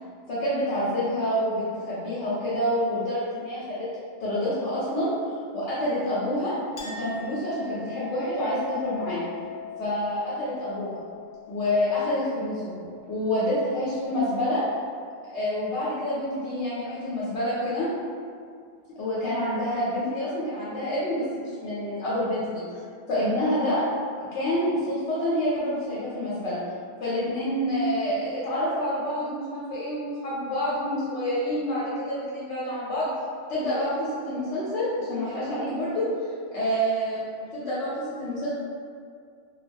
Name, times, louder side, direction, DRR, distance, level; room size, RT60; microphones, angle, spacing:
voice 1, 0.3-3.9 4.2-5.1 5.5-6.5 6.8-9.2 9.8-11.0 11.5-12.8 13.1-14.6 15.2-17.9 19.0-22.6 23.1-23.8 24.3-26.6 27.0-33.1 33.5-36.1 36.5-38.5, left 1 dB, 80° left, -9 dB, 1.0 m, -27 dB
Chink clink, 6.8-13.8, left 8 dB, 55° left, 0.6 m, -41 dB
2.3 x 2.2 x 3.3 m, 2.2 s
omnidirectional pair, 1.2 m